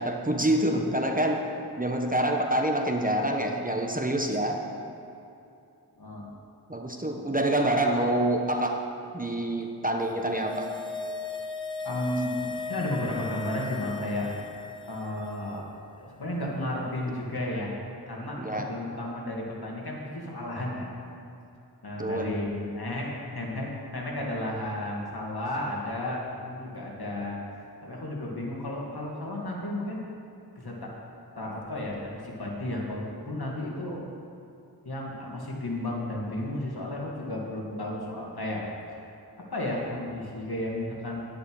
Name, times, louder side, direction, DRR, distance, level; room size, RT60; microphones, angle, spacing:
voice 1, 0.0-1.4 1.8-4.6 6.7-8.8 9.1-10.7 18.4-18.7 22.0-22.4, right 1 dB, 20° right, 2 dB, 1.1 m, -26 dB
voice 2, 6.0-6.3 11.8-14.3 14.9-15.7 15.9-17.7 18.1-20.9 21.8-23.1 23.3-30.0 30.6-30.9 31.3-34.0 34.8-38.6 38.9-39.1 39.4-41.2, left 1 dB, 65° left, -3 dB, 2.3 m, -33 dB
sound 1, 10.1-15.6 15.8-15.9, left 4 dB, 10° left, 1.0 m, -37 dB
11.5 x 10.0 x 4.8 m, 2.7 s
wide cardioid pair, 45°, 41 cm